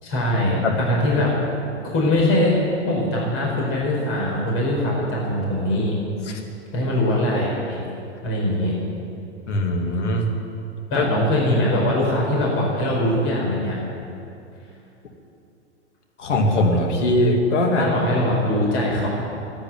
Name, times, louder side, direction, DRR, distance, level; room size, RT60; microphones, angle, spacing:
voice 1, 0.0-1.3 1.9-2.5 2.9-5.9 6.7-7.8 8.2-8.8 10.9-13.8 17.8-19.1, left 1 dB, 40° left, -3 dB, 4.8 m, -22 dB
voice 2, 9.5-10.3 10.9-11.1 16.2-17.9, left 1 dB, 85° left, 2 dB, 2.6 m, -20 dB
14.5 x 10.0 x 9.4 m, 2.6 s
hypercardioid pair, 115°, 35 cm